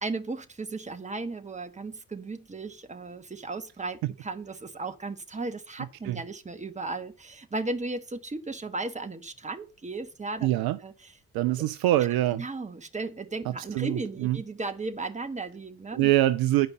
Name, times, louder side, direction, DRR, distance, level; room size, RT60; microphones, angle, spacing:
voice 1, 0.0-10.5 10.8-11.1 12.3-16.1, right 3 dB, 15° right, 1.3 m, -35 dB
voice 2, 10.4-10.8 11.3-12.4 13.7-14.4 15.9-16.7, right 14 dB, 55° right, 0.6 m, -24 dB
10.0 x 5.2 x 6.4 m
figure-of-eight pair, 45°, 44 cm